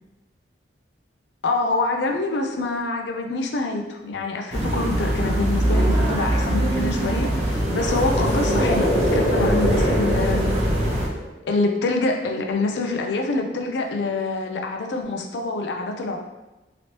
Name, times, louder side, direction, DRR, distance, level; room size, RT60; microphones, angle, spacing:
voice 1, 1.4-10.5 11.5-16.2, left 3 dB, 75° left, 3 dB, 0.4 m, -26 dB
sound 1, 4.5-11.1, right 1 dB, 35° right, 0.7 m, -22 dB
sound 2, 7.3-11.4, equal, 90° left, 1.0 m, -25 dB
3.0 x 2.9 x 2.8 m, 1.1 s
head